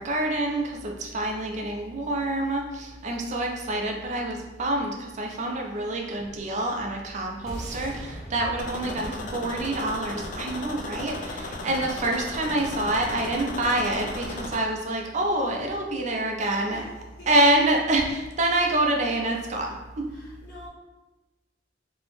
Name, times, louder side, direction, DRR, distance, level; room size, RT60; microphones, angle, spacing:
voice 1, 0.0-16.8 17.3-20.1, right 1 dB, 40° right, 1 dB, 0.4 m, -26 dB
sound 1, 7.5-11.9, right 1 dB, ahead, 0.7 m, -42 dB
sound 2, 8.6-14.6, left 2 dB, 45° left, 0.3 m, -35 dB
voice 2, 8.8-9.5 16.7-16.9 17.2-17.3 20.1-20.7, equal, 70° left, -5 dB, 0.9 m, -45 dB
2.6 x 2.0 x 3.1 m, 1.1 s
head